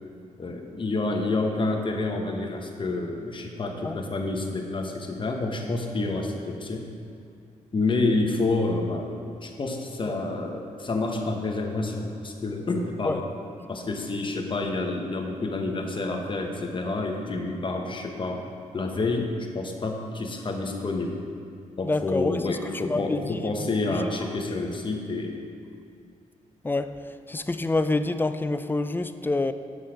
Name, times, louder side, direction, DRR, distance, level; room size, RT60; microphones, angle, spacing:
voice 1, 0.4-6.9 7.7-13.3 13.7-18.4 18.7-21.2 21.8-25.4, left 2 dB, 35° left, 2 dB, 1.0 m, -28 dB
voice 2, 21.9-22.6 22.9-23.3 23.9-24.0 26.6-26.9 27.3-29.5, left 2 dB, 15° left, 11 dB, 0.3 m, -27 dB
8.1 x 5.9 x 5.0 m, 2.4 s
cardioid pair, 85°, 14 cm